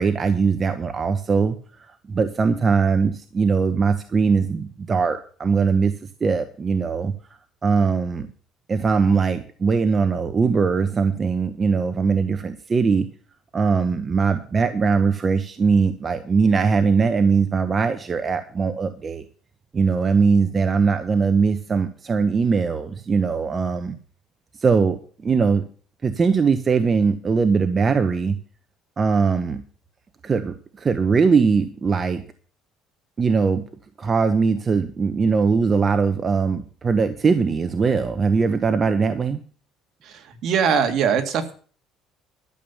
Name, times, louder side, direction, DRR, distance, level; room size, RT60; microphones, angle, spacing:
voice 1, 0.0-5.9 6.2-7.1 7.6-8.3 8.7-13.1 13.5-19.2 19.7-23.9 24.6-25.6 26.0-28.4 29.0-29.6 30.2-32.2 33.2-33.6 34.0-39.4, right 5 dB, 25° right, 8 dB, 0.9 m, -21 dB
voice 2, 40.4-41.5, right 7 dB, 55° right, 6 dB, 1.9 m, -20 dB
12.5 x 7.1 x 7.0 m, 0.41 s
cardioid pair, 135°, 0 cm